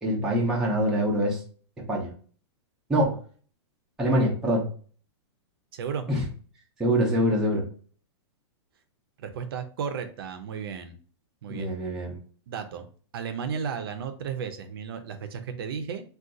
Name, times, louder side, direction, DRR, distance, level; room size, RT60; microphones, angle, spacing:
voice 1, 0.0-1.4 1.9-2.1 2.9-3.2 4.0-4.7 6.1-6.2 6.8-7.6 11.5-12.2, equal, 5° right, -4 dB, 0.5 m, -24 dB
voice 2, 5.7-6.1 9.2-11.0 11.4-11.7 12.5-12.9 13.1-16.0, right 6 dB, 55° right, 8 dB, 0.5 m, -34 dB
2.5 x 2.3 x 3.7 m, 0.41 s
supercardioid pair, 175°, 15 cm